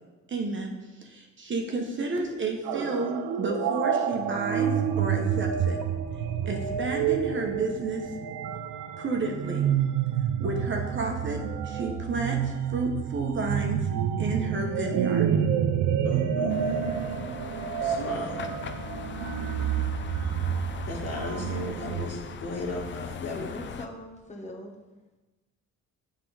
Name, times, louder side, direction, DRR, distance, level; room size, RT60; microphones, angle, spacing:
voice 1, 0.3-0.7 1.0-5.8 6.5-8.1 9.0-9.7 10.4-13.8 14.2-15.3, right 3 dB, 40° right, 2 dB, 1.1 m, -31 dB
sound 1, 2.6-22.1, right 8 dB, 90° right, 0.5 m, -28 dB
voice 2, 16.0-16.8 17.8-18.3 20.9-23.5, left 2 dB, 55° left, -2 dB, 1.9 m, -36 dB
sound 2, 16.5-23.9, left 7 dB, 40° left, 0.5 m, -39 dB
voice 3, 23.3-24.7, left 1 dB, 25° left, 1 dB, 1.3 m, -41 dB
7.5 x 3.8 x 4.9 m, 1.1 s
cardioid pair, 90°, 30 cm